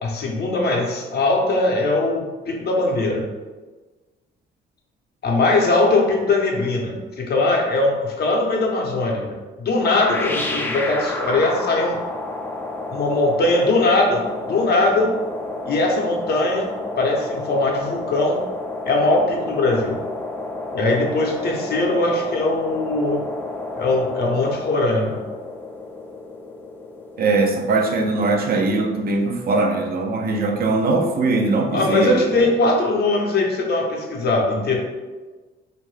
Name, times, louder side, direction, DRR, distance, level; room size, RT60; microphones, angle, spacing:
voice 1, 0.0-3.3 5.2-12.0 12.9-15.2 15.7-16.7 17.0-18.4 18.8-20.0 20.7-23.2 23.8-25.2 31.7-34.8, left 2 dB, 55° left, 0 dB, 0.6 m, -20 dB
sound 1, 9.8-28.6, left 2 dB, 10° left, 0.4 m, -31 dB
voice 2, 27.2-32.5, right 3 dB, 50° right, 3 dB, 0.4 m, -21 dB
2.6 x 2.5 x 3.1 m, 1.3 s
cardioid pair, 90°, 20 cm